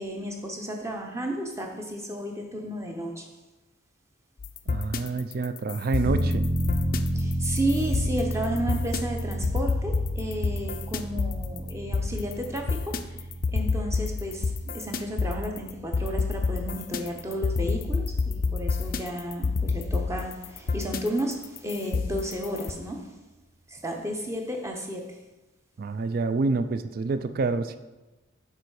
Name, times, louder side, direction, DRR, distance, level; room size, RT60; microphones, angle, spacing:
voice 1, 0.0-3.3 7.1-13.2 13.5-23.2 23.7-25.2, equal, 15° right, 2 dB, 0.7 m, -32 dB
sound 1, 4.4-22.7, left 4 dB, 45° left, 0.4 m, -29 dB
voice 2, 4.7-6.5 25.8-27.8, right 3 dB, 45° right, 11 dB, 0.3 m, -27 dB
sound 2, 6.0-18.6 18.9-19.0, right 1 dB, 60° right, 1.0 m, -32 dB
6.7 x 4.4 x 4.8 m, 1.1 s
head